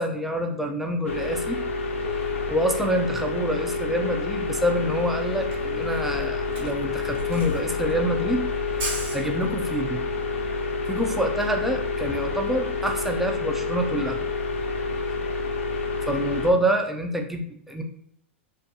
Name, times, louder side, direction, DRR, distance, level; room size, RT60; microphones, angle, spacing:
voice 1, 0.0-1.6 2.5-8.5 9.1-10.0 10.9-14.2 16.1-17.8, equal, 5° right, 2 dB, 0.4 m, -26 dB
sound 1, 1.0-16.5, left 4 dB, 85° left, 0.4 m, -28 dB
Camera, 5.0-5.1 5.3-9.9, right 1 dB, 65° right, 1.2 m, -36 dB
2.5 x 2.5 x 2.2 m, 0.66 s
hypercardioid pair, 115°, 7 cm